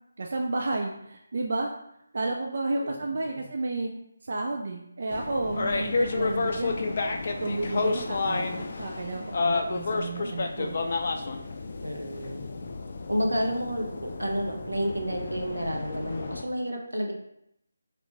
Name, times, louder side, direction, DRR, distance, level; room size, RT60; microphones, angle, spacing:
voice 1, 0.2-1.7 2.1-3.9 4.2-6.8 7.4-10.8, right 2 dB, 55° right, 1 dB, 0.3 m, -31 dB
sound 1, 5.1-16.4, left 3 dB, 45° left, 0.3 m, -31 dB
voice 2, 11.8-12.4 13.1-17.1, equal, 85° right, 0 dB, 0.7 m, -30 dB
3.3 x 2.5 x 2.9 m, 0.77 s
figure-of-eight pair, 155°, 0 cm